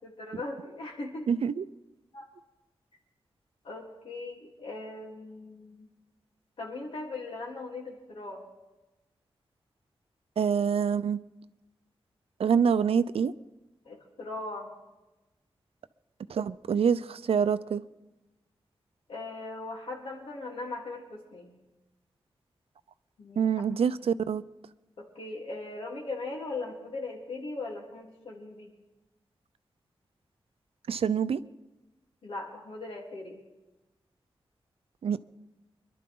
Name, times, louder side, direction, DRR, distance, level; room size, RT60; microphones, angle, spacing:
voice 1, 0.0-1.3 2.1-2.3 3.6-5.9 6.6-8.4 13.9-14.7 19.1-21.5 23.2-23.6 25.0-28.7 32.2-33.4, left 2 dB, 75° left, -2 dB, 3.6 m, -39 dB
voice 2, 1.3-1.6 10.4-11.2 12.4-13.3 16.3-17.8 23.4-24.4 30.9-31.4 35.0-35.2, right 7 dB, 85° right, 14 dB, 0.6 m, -26 dB
25.5 x 12.0 x 3.9 m, 1.1 s
wide cardioid pair, 155°, 10 cm